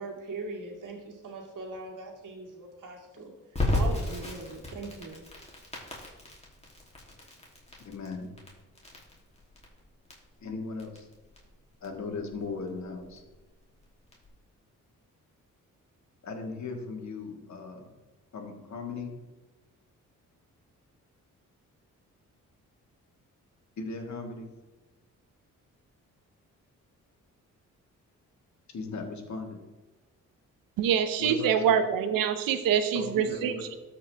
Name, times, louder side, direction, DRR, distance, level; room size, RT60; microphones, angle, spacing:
voice 1, 0.0-3.3 3.7-5.2, right 3 dB, 65° right, -1 dB, 2.2 m, -40 dB
Crackle, 3.5-14.3, left 1 dB, 20° left, 2.7 m, -35 dB
voice 2, 7.8-8.3 10.4-11.1 11.8-13.2 16.2-17.9 18.3-19.1 23.8-24.5 28.7-29.6 31.2-31.8 32.9-33.6, left 4 dB, 55° left, 3 dB, 1.8 m, -37 dB
voice 3, 30.8-33.8, right 8 dB, 90° right, 10 dB, 0.7 m, -25 dB
13.0 x 5.0 x 3.4 m, 1.1 s
cardioid pair, 65°, 33 cm